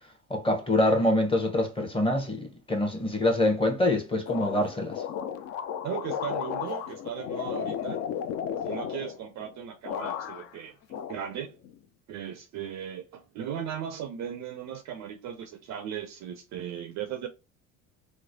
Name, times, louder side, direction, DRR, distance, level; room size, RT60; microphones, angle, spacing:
voice 1, 0.3-4.9, left 1 dB, 10° left, 0.9 m, -25 dB
sound 1, 4.3-9.5 9.8-10.6 10.9-11.8, left 8 dB, 35° left, 0.4 m, -34 dB
voice 2, 5.8-8.0 8.6-10.8 11.1-11.6 12.1-17.3, right 9 dB, 40° right, 0.5 m, -37 dB
3.1 x 2.1 x 2.6 m
hypercardioid pair, 65°, 43 cm